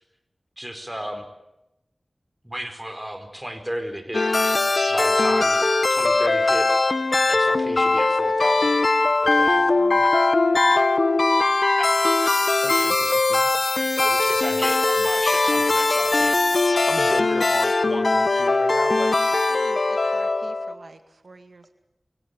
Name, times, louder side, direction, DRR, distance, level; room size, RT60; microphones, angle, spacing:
voice 1, 0.6-1.3 2.4-4.2 4.9-5.6 5.9-6.6 7.3-8.8 9.3-9.6 11.8-11.9 13.9-16.5, equal, 15° right, 7 dB, 4.6 m, -33 dB
sound 1, 4.1-20.7, left 3 dB, 60° left, 1.3 m, -20 dB
voice 2, 9.5-10.1 12.6-13.5 16.9-19.1, left 1 dB, 25° left, 8 dB, 2.1 m, -34 dB
voice 3, 19.3-21.7, right 3 dB, 80° right, 8 dB, 1.9 m, -46 dB
23.5 x 17.5 x 9.5 m, 0.88 s
wide cardioid pair, 45°, 0 cm